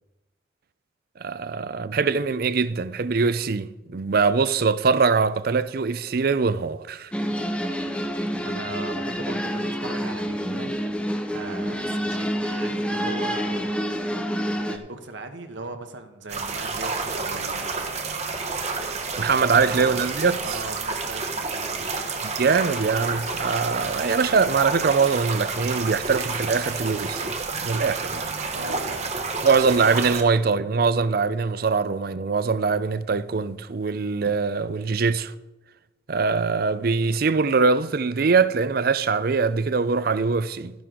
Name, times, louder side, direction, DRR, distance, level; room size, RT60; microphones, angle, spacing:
voice 1, 1.2-7.1 19.2-20.4 22.2-27.3 27.6-28.3 29.4-35.3 36.1-40.7, right 4 dB, 50° right, 0.5 m, -22 dB
sound 1, 7.1-14.8, equal, 5° left, 0.7 m, -28 dB
voice 2, 8.4-10.7 11.0-13.9 14.2-18.0 19.4-20.0 20.4-22.0 28.5-29.4, right 2 dB, 75° right, 1.1 m, -39 dB
sound 2, 16.3-30.2, right 4 dB, 35° right, 1.0 m, -30 dB
12.5 x 10.5 x 3.8 m
head